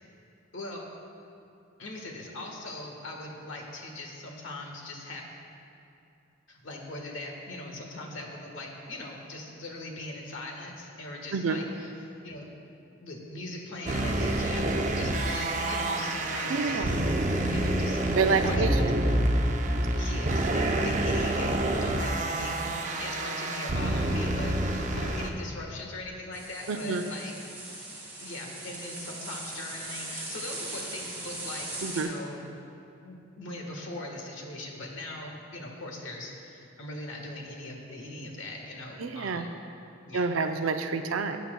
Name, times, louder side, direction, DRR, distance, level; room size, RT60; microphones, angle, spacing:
voice 1, 0.5-0.9 1.8-5.2 6.5-11.9 12.2-12.5 13.0-17.1 17.5-18.0 18.3-18.9 19.9-22.6 23.0-27.3 28.2-32.5 33.0-39.5 40.0-40.2, left 2 dB, 80° left, 0 dB, 1.3 m, -40 dB
sound 1, 13.9-25.3, right 1 dB, 40° right, 0.6 m, -27 dB
voice 2, 16.5-16.9 18.1-19.0 26.7-27.1 31.8-32.1 39.0-39.5 40.1-41.4, right 4 dB, 90° right, 7 dB, 0.5 m, -28 dB
sound 2, 26.3-32.0, right 2 dB, 10° right, 2.0 m, -39 dB
15.0 x 8.2 x 2.2 m, 2.7 s
head